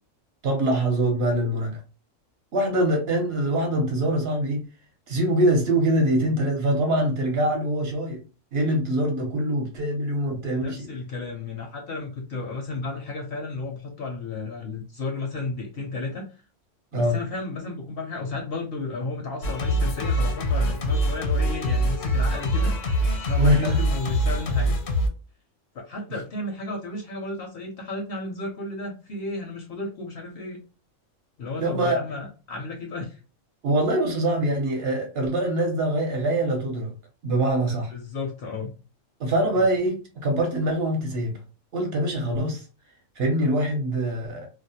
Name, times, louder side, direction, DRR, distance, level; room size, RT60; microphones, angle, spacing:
voice 1, 0.4-1.8 2.5-4.6 5.1-8.2 8.5-10.9 16.9-17.2 23.4-23.8 31.6-32.0 33.6-36.9 37.2-37.9 39.2-41.3 41.7-42.6 43.2-44.5, right 1 dB, 60° right, 0.8 m, -24 dB
voice 2, 10.5-16.3 16.9-24.8 25.7-30.6 31.4-33.2 37.9-38.7 39.6-39.7, left 2 dB, 65° left, 0.7 m, -33 dB
Singing, 19.4-25.1, equal, 80° left, 1.0 m, -24 dB
2.4 x 2.0 x 2.7 m
omnidirectional pair, 1.3 m